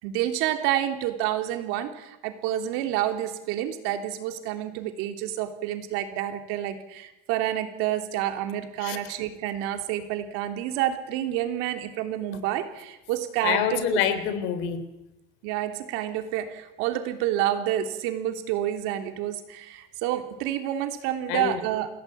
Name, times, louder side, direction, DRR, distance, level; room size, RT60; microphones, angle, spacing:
voice 1, 0.0-13.8 15.4-21.9, right 12 dB, 85° right, 6 dB, 3.4 m, -29 dB
voice 2, 8.8-9.1 13.4-14.8 21.3-21.6, left 9 dB, 70° left, 11 dB, 3.5 m, -26 dB
28.5 x 17.0 x 8.7 m, 0.96 s
cardioid pair, 160°, 21 cm